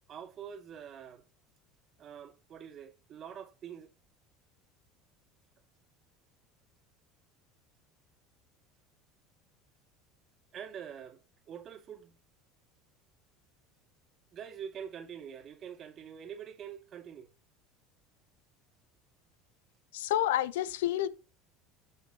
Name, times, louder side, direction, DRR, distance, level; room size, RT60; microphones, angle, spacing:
voice 1, 0.1-1.2 2.0-3.9 10.5-12.2 14.3-17.3, right 8 dB, 45° right, 2.3 m, -45 dB
voice 2, 19.9-21.1, left 12 dB, 85° left, 1.0 m, -29 dB
14.5 x 5.6 x 3.0 m
supercardioid pair, 100°, 0 cm